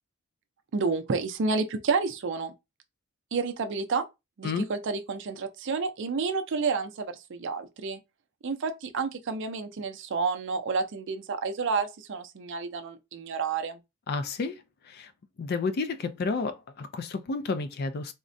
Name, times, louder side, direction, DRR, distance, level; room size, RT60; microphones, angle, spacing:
voice 1, 0.7-2.5 3.3-4.1 4.4-8.0 8.4-13.8, right 4 dB, 55° right, 0.4 m, -30 dB
voice 2, 14.1-15.1 15.4-18.1, left 4 dB, 50° left, 0.4 m, -31 dB
3.6 x 2.1 x 2.5 m
head